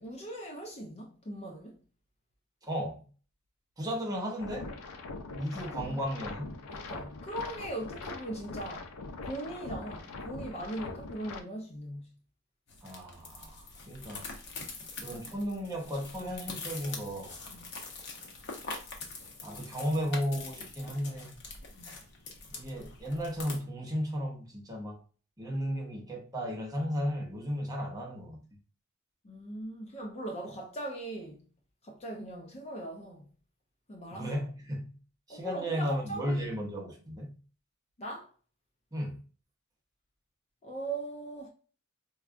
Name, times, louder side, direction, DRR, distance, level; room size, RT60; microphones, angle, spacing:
voice 1, 0.0-1.8 5.6-6.0 6.7-8.9 9.2-12.2 15.1-15.4 17.5-17.7 21.7-22.0 29.2-31.4 31.8-33.3 33.9-34.4 35.3-36.5 38.0-38.3 40.6-41.5, right 1 dB, 30° left, 0.5 m, -40 dB
voice 2, 2.6-3.0 3.8-4.7 5.3-6.5 12.8-14.2 15.0-17.4 19.4-21.3 22.5-25.0 25.4-28.4 34.1-34.9 35.3-37.4 38.9-39.2, equal, 15° right, 0.7 m, -34 dB
sound 1, 4.4-11.4, left 3 dB, 90° left, 0.5 m, -42 dB
sound 2, 12.7-23.6, left 3 dB, 55° left, 0.8 m, -44 dB
4.6 x 2.2 x 2.5 m
head